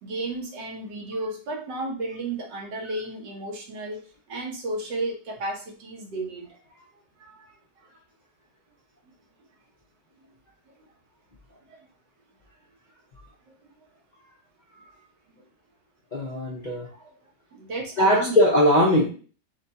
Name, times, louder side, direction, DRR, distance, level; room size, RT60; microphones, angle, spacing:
voice 1, 0.0-4.0 4.3-6.8 7.2-7.9 11.7-11.8 15.4-15.5 17.0-17.1 17.5-18.5, right 2 dB, 85° right, 0 dB, 1.7 m, -33 dB
voice 2, 16.1-16.9 18.0-19.0, equal, 50° left, -4 dB, 0.5 m, -20 dB
5.0 x 2.3 x 3.9 m, 0.38 s
omnidirectional pair, 1.9 m